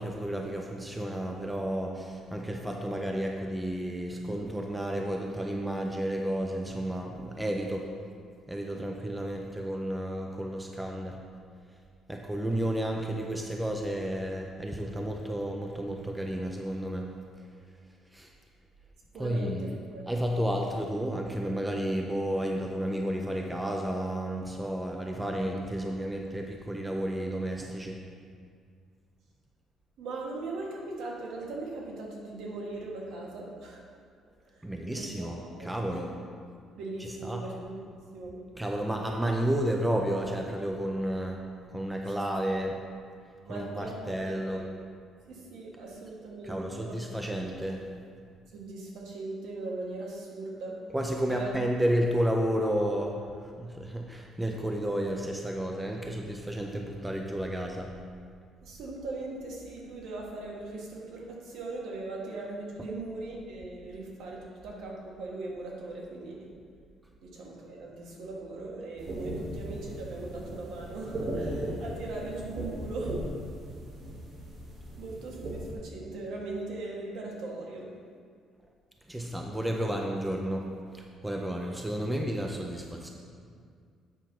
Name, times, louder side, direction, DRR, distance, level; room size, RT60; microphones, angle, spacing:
voice 1, 0.0-7.9 8.5-11.2 12.1-17.1 18.1-18.3 19.1-19.8 20.1-28.0 34.6-36.1 37.0-37.4 38.6-41.4 41.7-42.8 43.5-44.6 46.4-47.9 50.9-57.9 62.8-62.9 79.1-83.1, right 1 dB, 5° right, 1 dB, 0.4 m, -32 dB
voice 2, 19.1-20.1 30.0-33.9 34.5-34.7 34.9-36.0 36.7-37.8 38.1-38.3 43.4-44.6 45.3-47.0 48.5-50.8 51.3-51.5 58.6-66.5 67.2-73.2 75.0-77.9, right 2 dB, 60° right, -2 dB, 1.5 m, -39 dB
sound 1, 69.0-75.7, right 1 dB, 35° right, 1.2 m, -37 dB
7.9 x 4.5 x 5.7 m, 2.2 s
cardioid pair, 175°, 0 cm